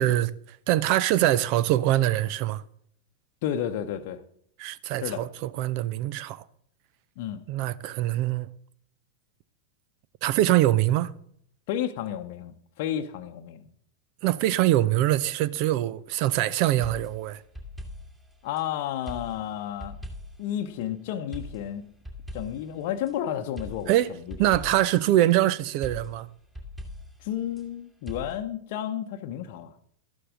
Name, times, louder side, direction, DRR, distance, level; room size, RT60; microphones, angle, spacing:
voice 1, 0.0-2.6 4.6-6.4 7.5-8.5 10.2-11.1 14.2-17.4 23.9-26.3, right 14 dB, 45° right, 0.5 m, -24 dB
voice 2, 3.4-4.2 5.0-5.2 7.2-7.4 11.7-13.6 18.4-20.0 20.4-21.9 22.3-23.9 27.2-29.7, left 10 dB, 50° left, 0.8 m, -31 dB
sound 1, 16.8-18.7 19.1-20.5 21.3-23.1 23.6-25.0 25.8-27.7 28.1-28.4, left 1 dB, 10° right, 2.5 m, -41 dB
13.5 x 11.0 x 3.7 m
figure-of-eight pair, 90°, 0 cm